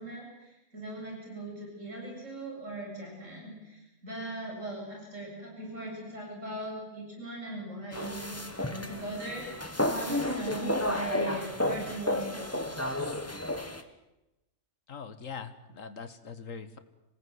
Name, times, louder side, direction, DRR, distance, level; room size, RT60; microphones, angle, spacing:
voice 1, 0.0-12.6, right 1 dB, 65° right, -1 dB, 8.0 m, -40 dB
sound 1, 7.9-13.8, left 1 dB, 10° left, 1.6 m, -32 dB
voice 2, 14.9-16.8, left 5 dB, 70° left, 11 dB, 2.0 m, -42 dB
26.5 x 18.5 x 9.5 m, 0.96 s
omnidirectional pair, 1.4 m